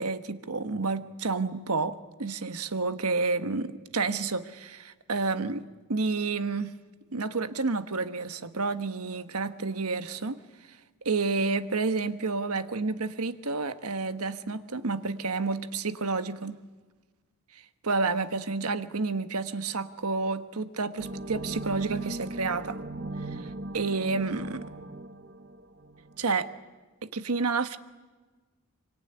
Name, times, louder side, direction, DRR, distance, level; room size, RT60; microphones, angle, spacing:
voice 1, 0.0-6.7 7.1-10.4 11.0-16.6 17.5-22.8 23.3-24.6 26.2-26.5 27.1-27.8, right 4 dB, 90° right, 10 dB, 1.3 m, -30 dB
sound 1, 21.0-26.3, right 2 dB, 45° right, 1.1 m, -38 dB
25.0 x 24.5 x 9.8 m, 1.3 s
head